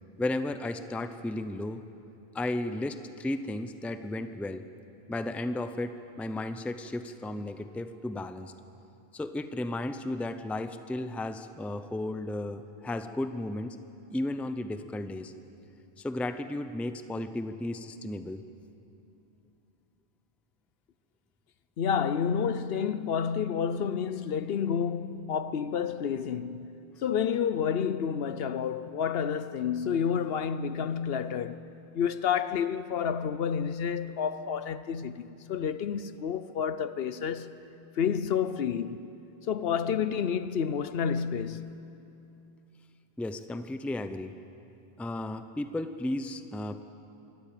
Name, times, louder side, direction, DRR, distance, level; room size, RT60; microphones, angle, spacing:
voice 1, 0.2-1.8 2.3-4.6 5.1-8.5 9.1-13.8 14.1-15.3 16.0-18.4 43.2-44.3 45.0-46.8, left 1 dB, ahead, 0.5 m, -34 dB
voice 2, 21.8-31.7 31.9-37.6 38.0-39.0 39.5-41.8, left 7 dB, 75° left, 0.9 m, -30 dB
25.0 x 13.0 x 8.9 m
omnidirectional pair, 1.0 m